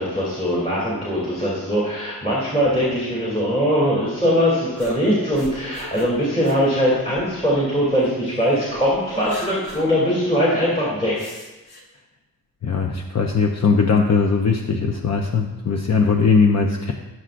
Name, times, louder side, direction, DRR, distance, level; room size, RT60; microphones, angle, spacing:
voice 1, 0.0-11.1, equal, 15° left, -7 dB, 2.8 m, -21 dB
sound 1, 4.8-8.1 8.5-9.9 10.2-10.3 11.1-11.8, left 2 dB, 90° left, 2.2 m, -40 dB
voice 2, 12.6-16.9, left 5 dB, 45° left, 2 dB, 0.7 m, -19 dB
18.5 x 7.7 x 2.5 m, 1.1 s
wide cardioid pair, 175°, 37 cm